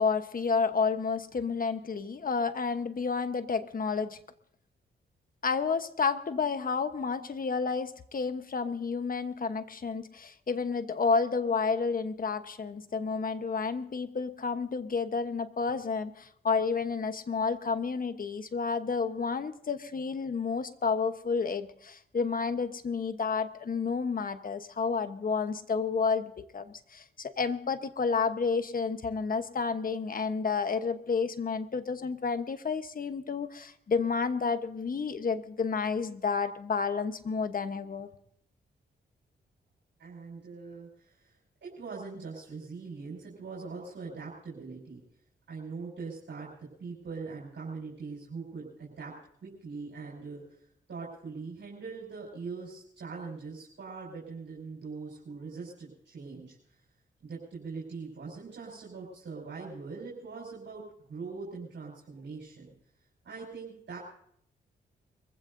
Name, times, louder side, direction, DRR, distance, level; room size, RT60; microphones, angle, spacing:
voice 1, 0.0-4.2 5.4-38.1, left 5 dB, 45° left, 10 dB, 1.1 m, -30 dB
voice 2, 40.0-41.3 41.6-45.0 45.5-49.1 49.4-50.6 50.9-56.6 57.2-62.7 63.2-64.0, right 4 dB, 70° right, -4 dB, 5.2 m, -42 dB
24.0 x 15.5 x 2.7 m, 0.69 s
cardioid pair, 60°, 20 cm